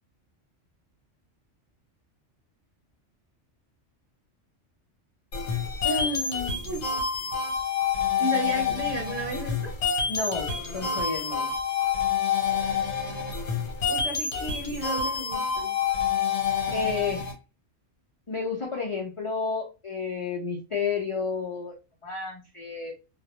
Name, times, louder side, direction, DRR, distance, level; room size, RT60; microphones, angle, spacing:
sound 1, 5.3-17.3, left 6 dB, 75° left, 1.0 m, -28 dB
voice 1, 5.8-6.6 10.1-11.5 16.7-17.3 18.3-21.7 22.0-22.9, left 4 dB, 55° left, -1 dB, 0.3 m, -31 dB
voice 2, 8.2-9.7 13.9-15.7 16.7-17.1, right 1 dB, 40° right, -1 dB, 0.7 m, -34 dB
2.3 x 2.0 x 2.8 m, 0.29 s
omnidirectional pair, 1.2 m